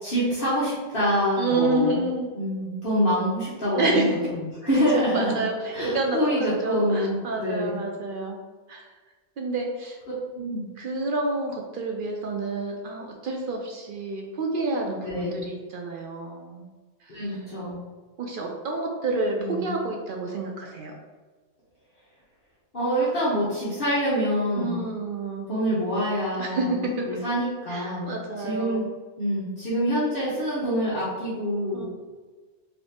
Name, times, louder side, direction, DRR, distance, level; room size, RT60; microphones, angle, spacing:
voice 1, 0.0-2.0 2.4-5.4 5.7-7.7 10.3-10.6 15.0-15.5 17.1-17.8 19.4-19.8 22.7-24.8 25.5-28.9 29.2-31.9, equal, 50° left, -9 dB, 1.3 m, -26 dB
voice 2, 1.4-2.3 3.7-4.3 4.7-8.4 8.7-8.9 9.4-10.0 10.8-16.7 17.0-17.4 18.2-20.9 24.5-25.5 26.4-27.2 27.7-28.9 31.7-31.9, right 2 dB, 60° right, 1 dB, 0.6 m, -29 dB
4.7 x 2.6 x 3.3 m, 1.4 s
omnidirectional pair, 1.2 m